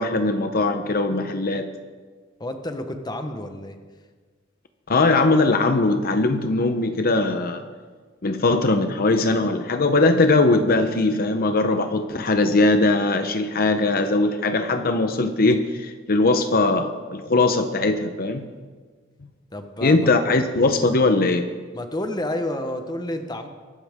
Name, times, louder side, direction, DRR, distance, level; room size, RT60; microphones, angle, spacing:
voice 1, 0.0-1.7 4.9-7.6 8.2-18.5 19.8-21.5, left 2 dB, 50° left, 7 dB, 0.8 m, -20 dB
voice 2, 2.4-3.8 19.5-20.1 21.7-23.5, left 1 dB, 20° left, 6 dB, 1.1 m, -30 dB
23.0 x 12.5 x 3.6 m, 1.5 s
head